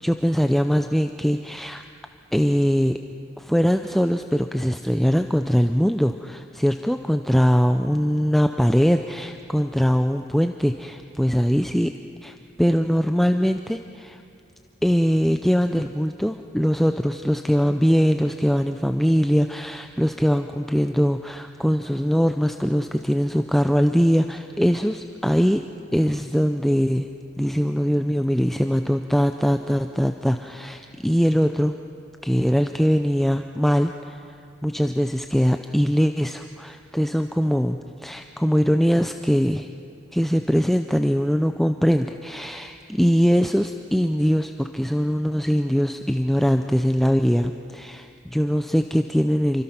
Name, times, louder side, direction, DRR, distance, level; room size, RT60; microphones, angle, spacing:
voice 1, 0.0-1.8 2.3-3.0 3.4-11.9 12.2-14.2 14.8-25.6 25.9-27.1 27.4-31.7 32.2-34.2 34.6-39.7 40.1-49.6, equal, ahead, 6 dB, 0.5 m, -21 dB
28.5 x 24.5 x 5.8 m, 2.6 s
head